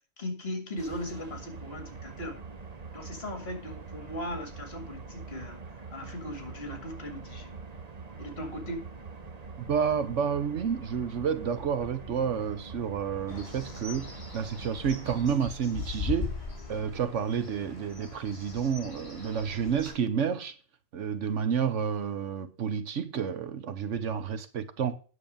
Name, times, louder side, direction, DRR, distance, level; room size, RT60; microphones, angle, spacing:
voice 1, 0.2-2.4 2.9-7.5 8.2-8.9, left 1 dB, 50° left, 2.6 m, -38 dB
sound 1, 0.8-15.4, right 4 dB, 35° right, 0.9 m, -44 dB
voice 2, 9.6-16.3 16.7-20.6 20.9-25.0, right 7 dB, 65° right, 1.2 m, -30 dB
Bird, 13.3-19.9, left 6 dB, 25° left, 4.6 m, -40 dB
9.5 x 6.5 x 5.2 m
omnidirectional pair, 1.4 m